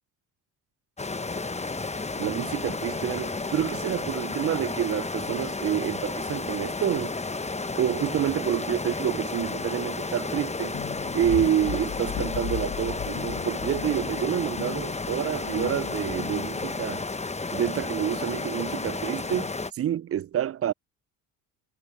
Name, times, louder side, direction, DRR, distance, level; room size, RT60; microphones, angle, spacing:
sound 1, 1.0-19.7, left 3 dB, 15° left, 1.2 m, -32 dB
voice 1, 2.2-7.1 7.7-10.8 11.1-17.0 17.5-20.7, right 10 dB, 30° right, 0.5 m, -28 dB
sound 2, 10.7-16.9, left 12 dB, 40° left, 0.8 m, -37 dB
hypercardioid pair, 55°, 47 cm